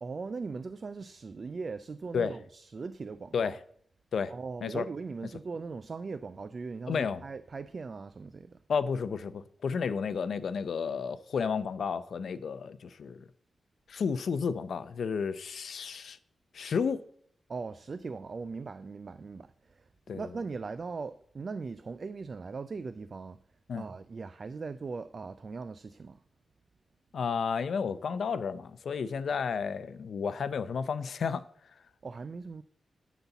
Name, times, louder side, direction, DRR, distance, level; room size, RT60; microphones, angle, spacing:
voice 1, 0.0-3.5 4.3-8.6 17.5-23.4 23.7-26.2 32.0-32.6, right 4 dB, 40° right, 0.3 m, -39 dB
voice 2, 6.9-7.2 8.7-13.2 13.9-16.2 16.5-17.0 20.1-20.2 23.7-23.8 27.1-31.4, left 6 dB, 65° left, 0.5 m, -32 dB
12.0 x 4.1 x 6.9 m
wide cardioid pair, 160°, 0 cm